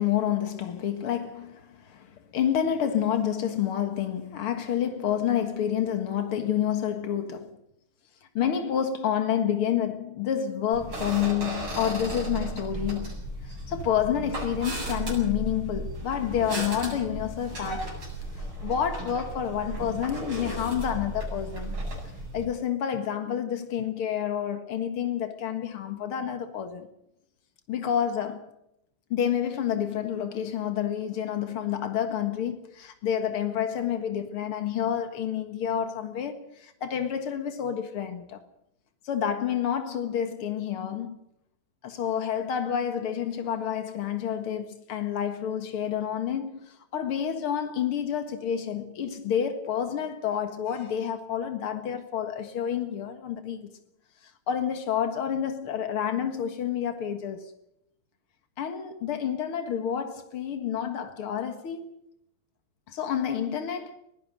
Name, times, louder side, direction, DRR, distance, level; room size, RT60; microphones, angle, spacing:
voice 1, 0.0-7.6 8.3-13.2 13.7-17.9 18.4-21.8 22.3-26.9 27.7-28.5 29.1-38.4 39.0-41.2 41.8-53.7 54.5-57.5 58.6-61.9 62.9-64.0, left 9 dB, 85° left, 2.5 m, -29 dB
sound 1, 10.7-22.4, right 1 dB, 75° right, 9.0 m, -35 dB
21.5 x 16.0 x 7.8 m
omnidirectional pair, 2.4 m